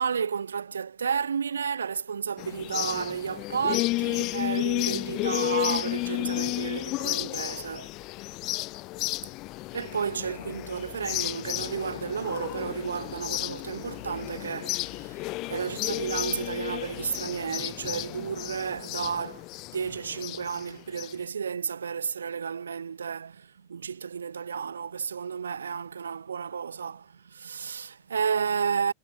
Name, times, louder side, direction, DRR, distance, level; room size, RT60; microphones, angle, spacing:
voice 1, 0.0-7.9 9.7-19.5 19.7-28.9, right 6 dB, 70° right, 2.1 m, -32 dB
sound 1, 2.4-21.1, left 21 dB, 40° left, 2.2 m, -32 dB
figure-of-eight pair, 90°, 0 cm